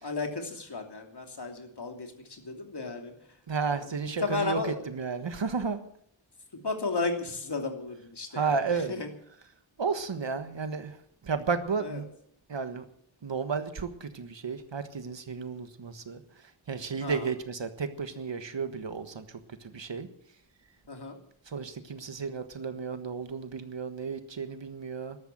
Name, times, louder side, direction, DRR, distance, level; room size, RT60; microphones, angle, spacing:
voice 1, 0.0-3.1 3.6-4.8 6.6-9.1 11.8-12.0 17.0-17.3 20.9-21.2, left 3 dB, 55° left, 4 dB, 3.0 m, -34 dB
voice 2, 3.5-4.6 4.9-5.8 8.3-8.9 9.8-10.9 11.2-12.1 12.5-12.8 13.2-16.2 16.7-19.2 19.7-20.1 21.5-25.2, right 5 dB, 65° right, 9 dB, 1.5 m, -32 dB
13.0 x 12.5 x 7.7 m, 0.65 s
wide cardioid pair, 95°, 47 cm